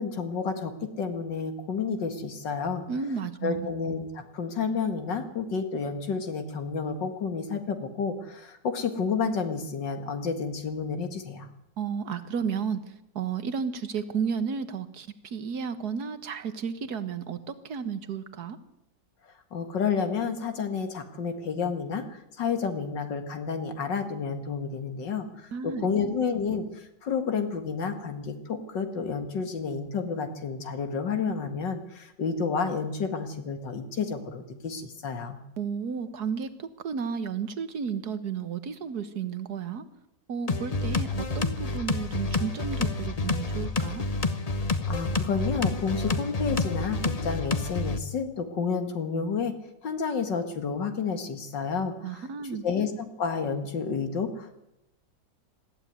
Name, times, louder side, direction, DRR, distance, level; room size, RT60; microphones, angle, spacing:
voice 1, 0.0-2.9 3.4-11.5 19.5-35.4 44.9-49.5 49.8-52.2 52.6-54.6, left 5 dB, 85° left, 7 dB, 2.6 m, -30 dB
voice 2, 2.9-3.7 11.8-18.6 25.5-25.8 35.6-39.9 40.3-44.0 52.0-52.6, right 6 dB, 65° right, 11 dB, 1.9 m, -33 dB
sound 1, 40.5-48.0, left 3 dB, 30° left, 0.8 m, -28 dB
19.5 x 15.0 x 9.6 m, 0.86 s
omnidirectional pair, 1.9 m